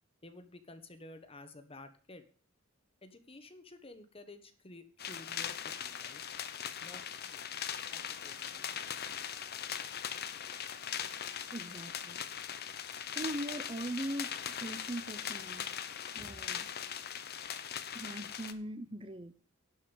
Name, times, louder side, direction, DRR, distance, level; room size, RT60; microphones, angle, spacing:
voice 1, 0.2-2.3 3.0-6.2 6.8-7.4 7.9-8.8, left 2 dB, 30° left, 1.4 m, -52 dB
sound 1, 5.0-18.5, left 9 dB, 50° left, 0.9 m, -40 dB
voice 2, 11.5-12.2 13.1-15.7 16.1-16.7 17.9-19.3, right 1 dB, 25° right, 0.7 m, -41 dB
11.5 x 5.5 x 8.0 m
head